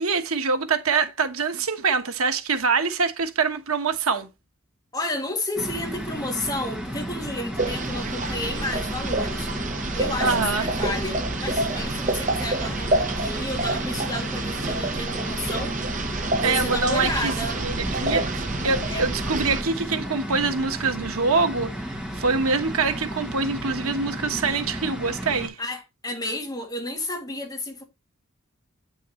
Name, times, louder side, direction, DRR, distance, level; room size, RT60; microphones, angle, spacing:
voice 1, 0.0-4.3 10.2-10.6 16.4-17.3 17.6-18.2 18.6-25.6, right 4 dB, 90° right, 1.2 m, -24 dB
voice 2, 4.9-9.5 9.9-16.0 16.4-17.6 18.0-18.2 18.9-19.1 25.6-27.8, left 1 dB, 20° left, 2.2 m, -32 dB
sound 1, 5.6-25.5, equal, 5° right, 1.6 m, -33 dB
sound 2, 7.6-19.6, right 2 dB, 35° right, 0.9 m, -28 dB
9.1 x 6.3 x 3.0 m
head